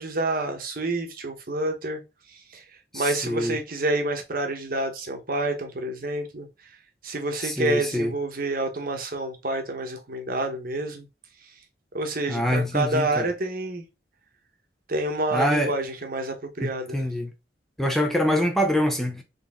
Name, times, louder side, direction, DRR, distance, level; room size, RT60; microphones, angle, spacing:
voice 1, 0.0-2.0 2.5-2.6 2.9-6.5 7.0-11.1 11.9-13.9 14.9-17.0, right 2 dB, 55° right, 1.1 m, -28 dB
voice 2, 2.9-3.6 7.4-8.1 12.3-13.3 15.3-15.7 16.6-17.3 17.8-19.2, equal, ahead, 0.6 m, -25 dB
4.1 x 3.5 x 3.6 m
head